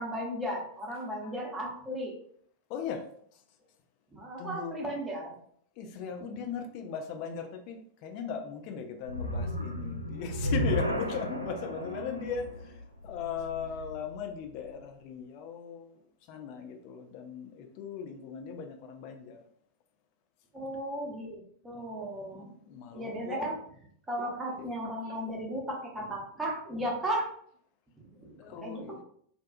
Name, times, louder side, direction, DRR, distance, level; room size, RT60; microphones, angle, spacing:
voice 1, 0.0-2.1 4.1-5.3 20.5-22.5 22.9-23.6 24.1-27.3 28.1-28.3 28.6-29.0, right 1 dB, 10° right, -2 dB, 0.8 m, -35 dB
voice 2, 0.9-1.4 2.7-3.4 4.4-4.8 5.8-16.0 16.3-19.4 21.7-23.5 24.2-24.3 24.6-24.8 25.0-25.2 28.4-29.0, left 6 dB, 45° left, 4 dB, 0.3 m, -39 dB
sound 1, 9.0-14.3, equal, 90° right, 0.3 m, -34 dB
2.6 x 2.2 x 2.4 m, 0.62 s
figure-of-eight pair, 90°, 0 cm